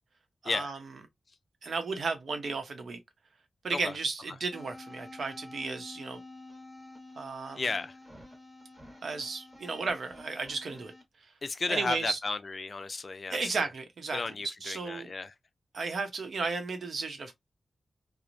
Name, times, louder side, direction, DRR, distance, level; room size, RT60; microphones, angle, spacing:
voice 1, 0.4-0.8 1.6-3.0 3.6-6.2 7.2-7.6 9.0-10.9 11.7-12.2 13.3-14.2 14.6-15.1 15.7-17.3, right 4 dB, 80° right, 0.7 m, -34 dB
sound 1, 4.5-11.0, left 2 dB, 5° right, 1.1 m, -49 dB
voice 2, 7.6-8.0 11.4-13.7 14.1-15.3, left 3 dB, 50° left, 0.4 m, -34 dB
3.0 x 2.0 x 2.5 m
wide cardioid pair, 95°, 0 cm